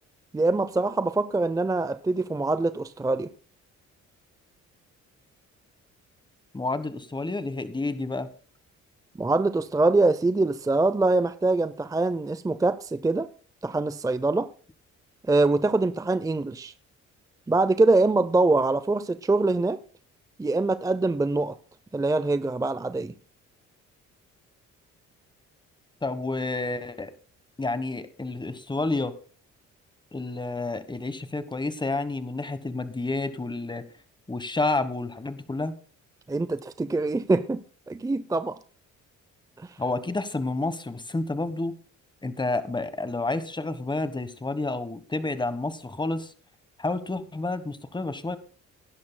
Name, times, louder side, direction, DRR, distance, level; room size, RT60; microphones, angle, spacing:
voice 1, 0.3-3.3 9.2-13.3 13.6-14.5 15.3-16.7 17.5-19.8 20.4-21.5 21.9-23.1 36.3-38.6 39.6-39.7, right 2 dB, 10° right, 0.5 m, -24 dB
voice 2, 6.5-8.3 26.0-27.1 27.6-29.1 30.1-33.8 34.3-35.7 39.8-41.7 42.2-46.3 46.8-48.4, left 2 dB, 15° left, 1.3 m, -30 dB
19.0 x 10.5 x 2.2 m
cardioid pair, 90°, 30 cm